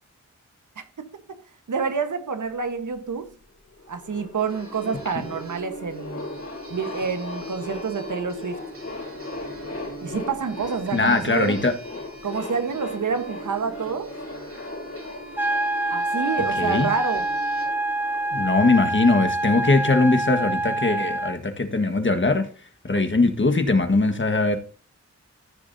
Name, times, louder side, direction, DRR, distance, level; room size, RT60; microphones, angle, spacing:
voice 1, 0.8-1.4 1.7-3.3 3.9-6.3 6.7-8.6 10.0-11.6 12.2-14.1 15.9-17.3 23.0-23.1, right 5 dB, 85° right, 1.2 m, -28 dB
sound 1, 3.4-3.5 3.7-19.6, left 2 dB, 60° left, 4.8 m, -38 dB
sound 2, 4.4-17.7, right 4 dB, 45° right, 3.9 m, -44 dB
voice 2, 10.9-11.7 16.6-16.9 18.3-22.5 22.8-24.6, left 3 dB, 40° left, 1.4 m, -21 dB
sound 3, 15.4-21.4, right 1 dB, 5° right, 0.5 m, -26 dB
14.0 x 7.1 x 2.7 m
wide cardioid pair, 70°, 30 cm